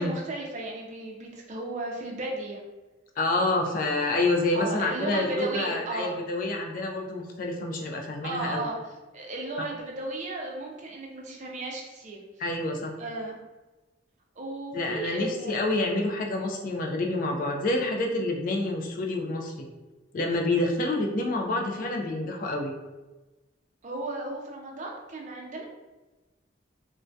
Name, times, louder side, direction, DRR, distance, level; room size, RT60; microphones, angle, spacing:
voice 1, 0.0-2.6 4.5-6.1 8.2-8.8 9.1-12.2 13.0-13.3 14.4-15.5 23.8-25.7, right 2 dB, 40° right, -1 dB, 0.5 m, -34 dB
voice 2, 3.2-8.6 12.4-12.9 14.7-19.7 20.1-22.7, left 2 dB, 45° left, 1 dB, 0.4 m, -28 dB
2.2 x 2.2 x 2.6 m, 1.1 s
head